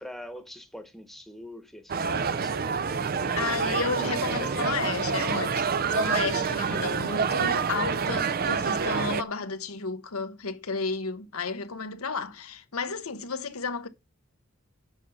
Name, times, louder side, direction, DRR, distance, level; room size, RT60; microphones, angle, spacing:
voice 1, 0.0-2.6 3.1-3.5 3.8-4.6, left 1 dB, ahead, 1.1 m, -43 dB
sound 1, 1.9-9.2, right 5 dB, 45° right, 0.5 m, -27 dB
voice 2, 3.4-13.9, left 4 dB, 90° left, 1.0 m, -32 dB
7.5 x 5.5 x 6.4 m
head